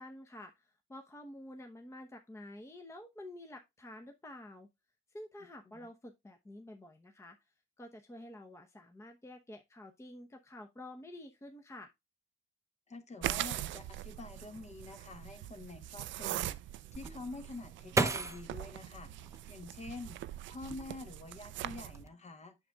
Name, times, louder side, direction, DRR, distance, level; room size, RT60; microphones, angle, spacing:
voice 1, 0.0-4.7 5.1-7.4 7.8-11.9, left 1 dB, 15° left, 0.8 m, -49 dB
voice 2, 12.9-16.6 16.9-19.1 19.5-20.2 20.5-22.6, left 3 dB, 35° left, 1.1 m, -47 dB
sound 1, 13.2-22.0, right 14 dB, 75° right, 0.4 m, -42 dB
sound 2, 16.9-20.0 20.6-21.3 21.6-22.1, right 3 dB, 15° right, 0.7 m, -35 dB
7.8 x 6.1 x 2.3 m
cardioid pair, 90°, 20 cm